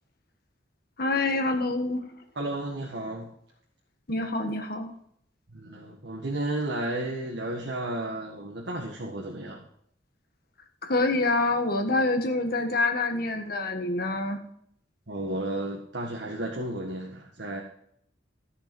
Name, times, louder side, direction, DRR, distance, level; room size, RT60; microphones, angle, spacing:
voice 1, 1.0-2.0 4.1-4.9 10.8-14.4, left 2 dB, 55° left, 5 dB, 1.7 m, -26 dB
voice 2, 2.3-3.3 5.5-9.6 15.1-17.6, right 1 dB, 70° right, -1 dB, 1.7 m, -33 dB
14.0 x 6.9 x 5.4 m, 0.69 s
head